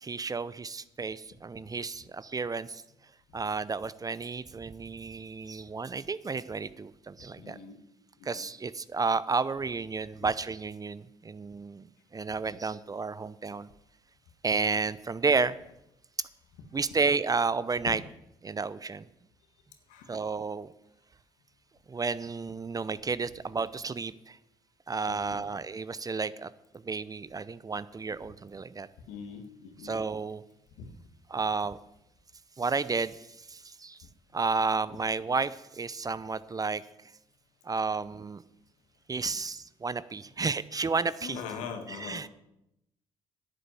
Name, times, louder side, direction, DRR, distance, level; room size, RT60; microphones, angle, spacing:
voice 1, 0.0-2.8 3.3-7.6 8.2-11.9 12.1-13.7 14.4-15.5 16.7-18.0 18.4-19.1 20.1-20.7 21.9-24.4 24.9-26.5 26.8-28.9 29.8-30.4 31.3-31.8 32.6-34.0 34.3-36.8 37.6-38.4 39.1-41.4 42.0-42.3, right 4 dB, 30° right, 17 dB, 0.7 m, -31 dB
voice 2, 7.4-7.8 8.2-8.5 17.9-18.0 19.9-20.2 25.1-25.5 29.1-30.0 30.8-30.9 41.2-42.3, left 6 dB, 75° left, 6 dB, 1.7 m, -42 dB
11.0 x 6.9 x 9.2 m, 0.83 s
hypercardioid pair, 55°, 13 cm